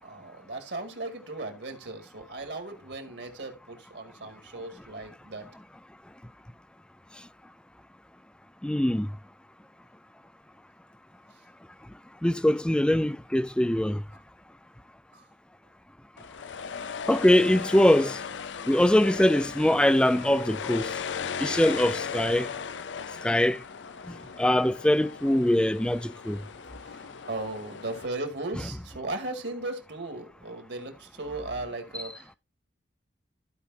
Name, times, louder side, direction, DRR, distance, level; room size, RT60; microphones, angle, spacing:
voice 1, 0.0-5.5 15.1-15.3 26.1-32.4, right 2 dB, 70° right, 2.1 m, -37 dB
voice 2, 8.6-9.1 12.2-14.0 17.1-18.2 18.7-20.9 21.4-22.5 23.2-23.6 24.1-26.4, left 1 dB, 5° left, 0.3 m, -22 dB
sound 1, 16.2-28.1, left 6 dB, 75° left, 0.5 m, -37 dB
15.0 x 5.1 x 2.7 m
head